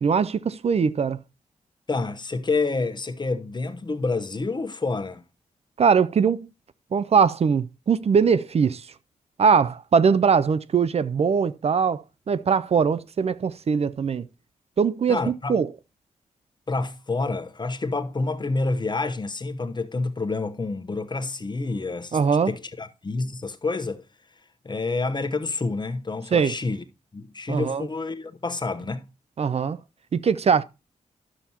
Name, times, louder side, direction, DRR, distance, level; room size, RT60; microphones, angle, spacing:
voice 1, 0.0-1.2 5.8-6.5 6.9-8.8 9.4-12.0 12.3-14.3 14.8-15.7 22.1-22.5 26.3-26.5 27.5-27.9 29.4-29.8 30.1-30.6, right 6 dB, 50° right, 0.4 m, -21 dB
voice 2, 1.9-5.2 15.1-15.5 16.7-22.2 22.5-24.0 24.6-26.8 27.1-29.1, left 3 dB, 35° left, 1.0 m, -28 dB
11.0 x 6.9 x 2.9 m
cardioid pair, 65°, 14 cm